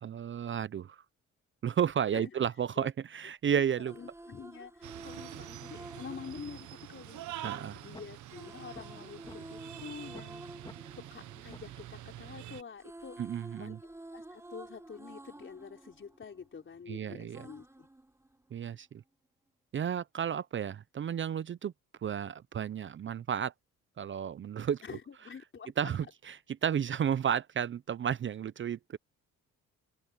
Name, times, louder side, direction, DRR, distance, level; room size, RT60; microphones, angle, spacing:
voice 1, 0.0-1.0 1.6-3.9 7.4-7.8 13.2-13.8 16.9-17.5 18.5-19.0 19.7-21.7 22.0-23.5 24.0-24.8 25.8-29.0, right 8 dB, 40° right, 0.6 m, -32 dB
voice 2, 2.1-2.4 2.8-2.9 3.2-10.5 11.0-13.2 13.6-17.9 24.8-25.9, left 6 dB, 40° left, 4.2 m, -47 dB
sound 1, 3.8-7.7 8.3-12.3 12.6-16.8 17.3-18.8, right 1 dB, 10° right, 3.6 m, -50 dB
sound 2, 4.8-12.6, right 13 dB, 75° right, 1.2 m, -46 dB
sound 3, 7.4-7.5 7.9-8.0 8.5-9.4 9.8-9.9 10.1-10.3 10.6-10.8 11.2-11.3 11.5-11.7, left 2 dB, 15° left, 1.8 m, -48 dB
cardioid pair, 90°, 30 cm